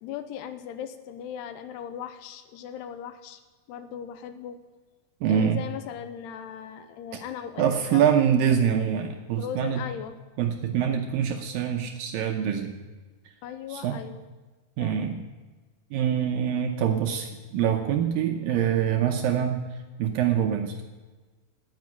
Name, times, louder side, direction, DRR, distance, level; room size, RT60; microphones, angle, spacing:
voice 1, 0.0-3.4 3.7-4.6 5.3-8.1 9.4-10.2 13.4-14.2 14.8-15.1, left 9 dB, 85° left, 9 dB, 2.9 m, -38 dB
voice 2, 5.2-5.6 7.6-9.8 10.4-12.8 13.7-14.0 14.8-15.2 15.9-19.6 20.0-20.8, right 8 dB, 75° right, 4 dB, 2.2 m, -25 dB
9.7 x 9.7 x 9.5 m, 1.3 s
omnidirectional pair, 4.7 m